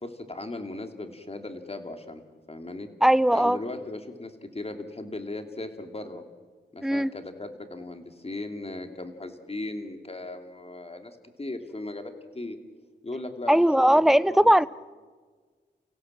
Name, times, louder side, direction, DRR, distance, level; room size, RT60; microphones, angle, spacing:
voice 1, 0.0-2.2 2.5-2.9 3.3-6.2 6.7-12.6 13.0-14.7, left 2 dB, 30° left, 6 dB, 2.8 m, -37 dB
voice 2, 3.0-3.6 6.8-7.1 13.5-14.7, equal, ahead, 18 dB, 0.6 m, -19 dB
29.5 x 16.0 x 7.6 m, 1.5 s
cardioid pair, 55°, 19 cm